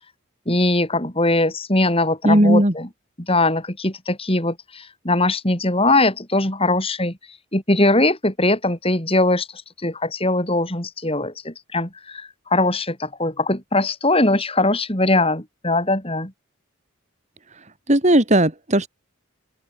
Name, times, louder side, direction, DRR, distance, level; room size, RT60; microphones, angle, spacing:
voice 1, 0.5-2.9 3.3-7.2 7.5-9.5 9.8-16.3, left 2 dB, 25° left, 4.4 m, -21 dB
voice 2, 2.2-2.7 17.9-18.9, right 1 dB, 35° right, 2.6 m, -16 dB
open air
head